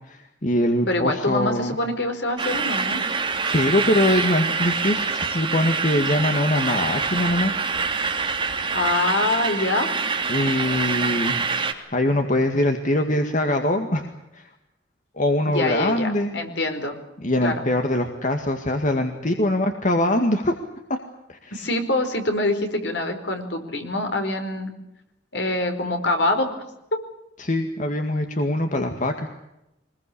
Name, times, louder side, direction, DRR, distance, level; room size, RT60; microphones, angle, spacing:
voice 1, 0.1-1.7 3.1-7.5 10.3-11.5 11.9-14.5 15.2-16.3 17.2-20.5 20.9-21.0 21.3-21.5 27.4-29.3, left 1 dB, 45° left, 5 dB, 2.0 m, -23 dB
voice 2, 0.9-3.0 8.7-9.9 15.5-17.0 17.4-17.6 21.5-24.7 25.3-26.6 26.9-27.0, left 2 dB, 65° left, 5 dB, 4.8 m, -25 dB
sound 1, 2.4-11.7, right 5 dB, 25° right, 3.0 m, -25 dB
24.5 x 21.0 x 8.6 m, 0.87 s
head